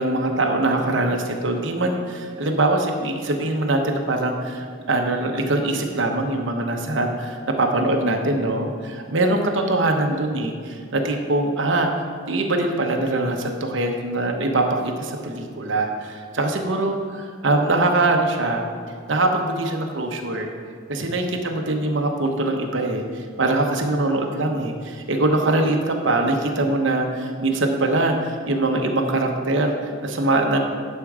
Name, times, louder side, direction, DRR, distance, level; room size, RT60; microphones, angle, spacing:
voice 1, 0.0-11.9 12.3-18.6 19.1-20.5 20.9-30.6, right 2 dB, 65° right, 3 dB, 0.9 m, -23 dB
11.0 x 4.5 x 4.8 m, 2.1 s
head